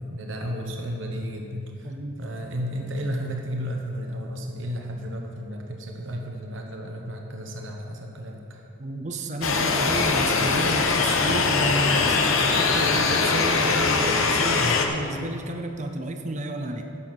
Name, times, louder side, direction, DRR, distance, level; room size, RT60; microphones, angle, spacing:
voice 1, 0.0-8.6 14.6-14.9, equal, 65° right, 1 dB, 1.0 m, -33 dB
voice 2, 1.8-2.2 8.8-16.9, right 2 dB, 35° right, 5 dB, 0.6 m, -31 dB
sound 1, 9.4-14.9, left 4 dB, 85° left, 1.0 m, -22 dB
11.0 x 7.0 x 6.0 m, 2.7 s
head